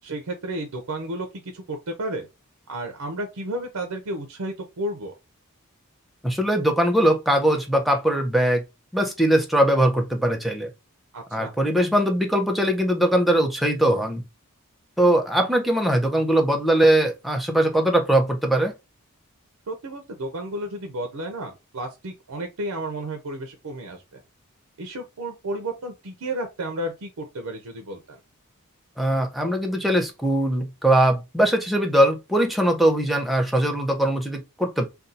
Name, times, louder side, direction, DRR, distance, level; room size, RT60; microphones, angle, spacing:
voice 1, 0.0-2.3 2.7-5.1 11.1-11.5 19.7-24.2 24.8-28.2, right 1 dB, 85° right, 0.6 m, -32 dB
voice 2, 6.2-8.6 8.9-10.7 11.3-14.2 15.0-18.7 29.0-34.9, right 1 dB, ahead, 0.6 m, -21 dB
2.6 x 2.3 x 3.9 m
head